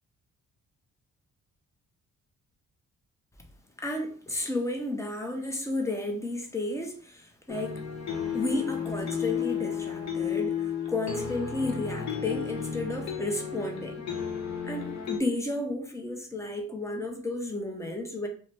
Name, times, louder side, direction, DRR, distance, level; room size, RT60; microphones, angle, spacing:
voice 1, 3.8-7.8 8.3-14.0 14.7-18.3, left 2 dB, 10° left, 0.6 m, -32 dB
sound 1, 7.5-15.2, left 8 dB, 65° left, 0.7 m, -33 dB
2.6 x 2.1 x 3.2 m
cardioid pair, 90°, 30 cm